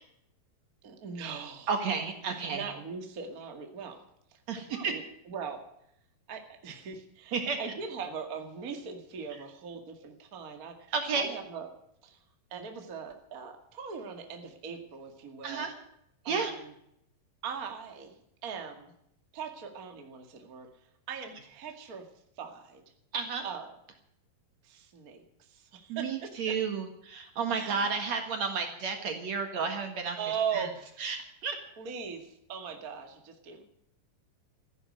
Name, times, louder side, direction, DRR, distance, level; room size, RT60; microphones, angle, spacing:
voice 1, 0.8-1.7 2.5-4.0 4.7-5.6 6.3-10.8 11.1-11.7 12.0-12.2 12.5-15.7 16.2-16.7 17.4-18.9 19.3-20.7 21.1-22.1 22.4-22.8 23.4-23.7 24.6-26.5 27.5-27.9 30.2-30.9 31.8-33.6, right 6 dB, 30° right, 4 dB, 1.9 m, -40 dB
voice 2, 1.7-2.7 4.5-4.9 7.3-7.6 10.9-11.3 15.4-15.7 16.2-16.5 23.1-23.5 25.9-30.2 30.5-30.7 31.0-31.6, right 5 dB, 55° right, 6 dB, 2.7 m, -32 dB
14.5 x 11.0 x 7.8 m, 0.74 s
omnidirectional pair, 4.0 m